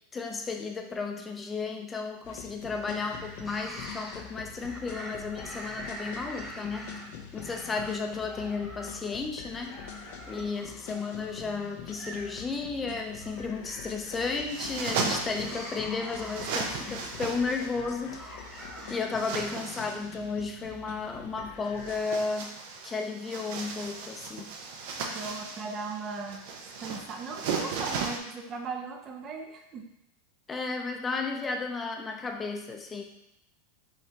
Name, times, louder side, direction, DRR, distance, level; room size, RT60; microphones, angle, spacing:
voice 1, 0.1-6.9 7.3-9.8 10.3-18.4 18.9-22.6 22.8-24.5 30.5-33.0, left 4 dB, 20° left, 3 dB, 0.6 m, -33 dB
sound 1, 2.2-22.0, left 7 dB, 65° left, 0.6 m, -45 dB
sound 2, 3.1-19.3, equal, ahead, 1.1 m, -46 dB
sound 3, 14.1-15.8 16.1-17.7 18.4-20.1 21.7-28.2, right 5 dB, 65° right, 0.7 m, -36 dB
voice 2, 25.1-26.4 26.8-29.8, right 4 dB, 30° right, 2 dB, 0.6 m, -38 dB
5.7 x 3.2 x 2.9 m, 0.84 s
supercardioid pair, 130°, 0 cm